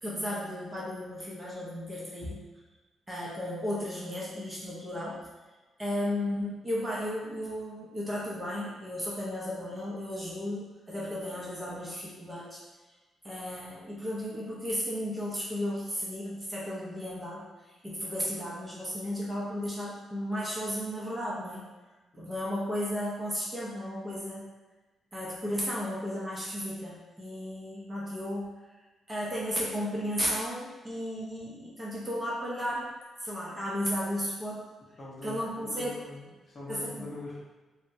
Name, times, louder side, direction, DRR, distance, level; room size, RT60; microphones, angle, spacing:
voice 1, 0.0-2.4 3.1-5.3 5.8-12.6 13.2-21.7 22.2-24.5 25.1-28.5 29.1-32.9 33.2-34.6 35.2-36.0 36.7-37.1, equal, 15° right, -6 dB, 0.6 m, -34 dB
voice 2, 35.0-37.4, left 2 dB, 30° left, -5 dB, 0.7 m, -43 dB
3.4 x 2.0 x 2.6 m, 1.2 s
cardioid pair, 165°, 0 cm